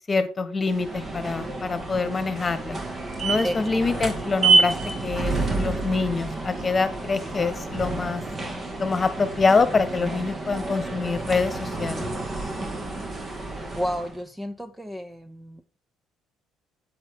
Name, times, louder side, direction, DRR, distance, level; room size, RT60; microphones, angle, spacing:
voice 1, 0.1-2.8 3.2-4.7 5.0-8.2 8.8-12.1, left 4 dB, 30° left, 1.4 m, -25 dB
sound 1, 0.6-14.2, right 3 dB, 35° right, 2.3 m, -28 dB
voice 2, 13.7-15.6, equal, 10° right, 0.8 m, -32 dB
8.8 x 7.5 x 3.9 m
supercardioid pair, 80°, 0 cm